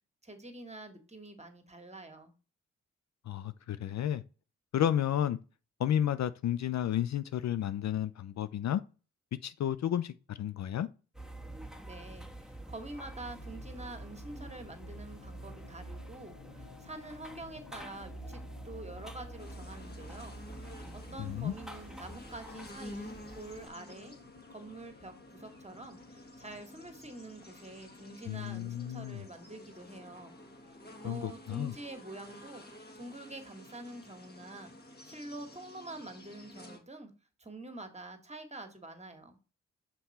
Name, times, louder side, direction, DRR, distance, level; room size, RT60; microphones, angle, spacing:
voice 1, 0.2-2.3 11.8-20.4 20.9-24.1 24.5-30.4 30.7-30.8 31.0-34.7 35.0-37.1 37.4-39.4, right 2 dB, 20° right, 1.7 m, -47 dB
voice 2, 3.3-4.2 4.7-5.4 5.8-8.8 9.4-10.9 21.2-21.5 28.3-29.3 31.0-31.7, left 10 dB, 60° left, 0.4 m, -32 dB
sound 1, 11.1-23.7, right 1 dB, ahead, 1.5 m, -47 dB
sound 2, 13.2-33.0, left 7 dB, 75° left, 1.0 m, -58 dB
sound 3, 19.4-36.8, left 1 dB, 30° left, 1.7 m, -51 dB
5.8 x 4.3 x 4.2 m
supercardioid pair, 40°, 33 cm